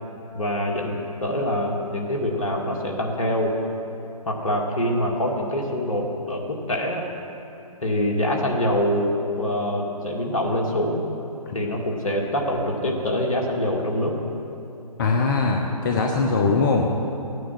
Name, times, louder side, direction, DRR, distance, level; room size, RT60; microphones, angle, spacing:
voice 1, 0.3-0.9 1.2-3.6 4.3-7.1 7.8-11.0 11.5-14.2, left 1 dB, 60° left, 0 dB, 2.1 m, -25 dB
voice 2, 15.0-17.1, left 4 dB, 35° left, 1 dB, 0.8 m, -21 dB
15.0 x 9.4 x 6.1 m, 2.9 s
figure-of-eight pair, 135°, 20 cm